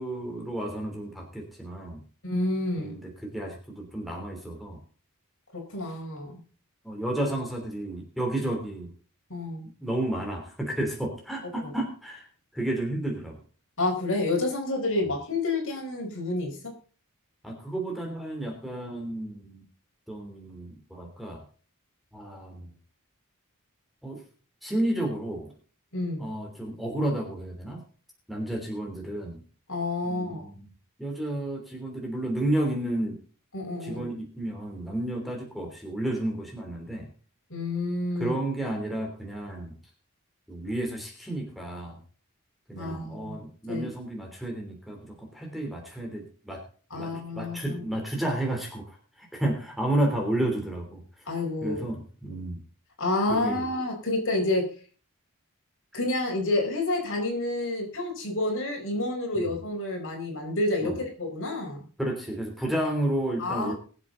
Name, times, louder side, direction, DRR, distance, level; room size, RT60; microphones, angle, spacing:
voice 1, 0.0-2.0 2.8-4.8 6.8-8.9 9.8-12.3 12.5-13.4 17.4-19.6 20.1-21.4 22.1-22.7 24.0-24.2 24.6-25.5 26.2-27.8 28.3-29.4 30.0-30.7 31.0-33.2 33.8-37.1 38.2-39.7 40.5-42.0 42.7-46.6 46.9-47.1 47.3-51.0 51.6-52.6 53.3-53.6 59.3-59.5 60.8-61.0 62.0-63.7, right 1 dB, ahead, 1 dB, 3.2 m, -31 dB
voice 2, 2.2-2.9 5.5-6.4 9.3-9.7 11.6-11.7 13.8-16.7 25.9-26.3 29.7-30.5 33.5-34.1 37.5-38.4 42.8-43.4 43.7-43.9 46.9-47.8 51.3-51.8 53.0-54.7 55.9-61.9 63.4-63.7, left 2 dB, 60° left, 1 dB, 4.9 m, -29 dB
21.5 x 7.6 x 3.9 m, 0.40 s
head